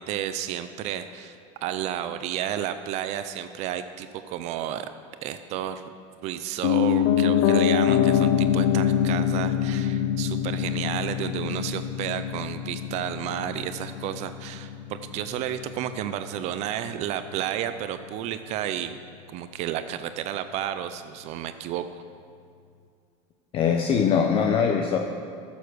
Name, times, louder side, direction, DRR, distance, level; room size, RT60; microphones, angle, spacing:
voice 1, 0.0-4.9 5.2-5.9 6.2-19.0 19.3-21.9, right 10 dB, 45° right, 10 dB, 0.5 m, -32 dB
Piano, 6.6-16.6 16.9-17.0, left 9 dB, 75° left, 0.7 m, -25 dB
voice 2, 23.5-25.0, left 6 dB, 35° left, 3 dB, 0.7 m, -22 dB
14.0 x 7.1 x 6.3 m, 2.3 s
cardioid pair, 155°, 16 cm